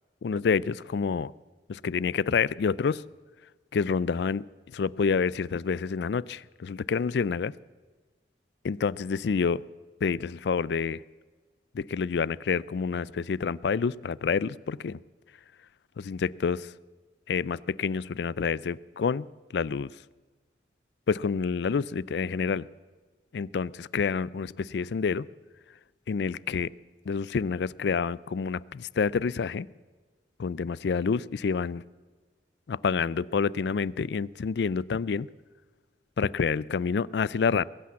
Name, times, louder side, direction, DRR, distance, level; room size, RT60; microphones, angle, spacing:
voice 1, 0.2-1.3 1.7-3.0 3.7-4.5 4.7-7.5 8.6-9.6 10.0-11.0 11.7-15.0 16.0-16.7 17.3-19.3 19.5-19.9 21.1-22.7 23.3-25.3 26.1-26.7 27.1-29.7 30.4-31.8 32.7-35.3 36.2-37.6, left 5 dB, 70° left, 21 dB, 0.4 m, -28 dB
21.5 x 8.5 x 7.5 m, 1.4 s
head